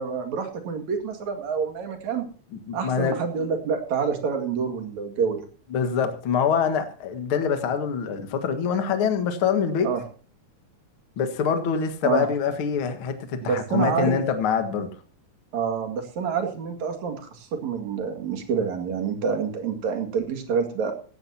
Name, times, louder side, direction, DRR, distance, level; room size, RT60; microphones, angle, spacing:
voice 1, 0.0-2.3 2.7-5.4 9.8-10.0 12.0-12.3 13.4-14.2 15.5-20.9, right 6 dB, 65° right, 6 dB, 3.3 m, -27 dB
voice 2, 2.7-3.2 5.7-9.9 11.2-14.9, left 6 dB, 50° left, 7 dB, 2.1 m, -25 dB
16.5 x 14.5 x 2.8 m, 0.40 s
omnidirectional pair, 3.7 m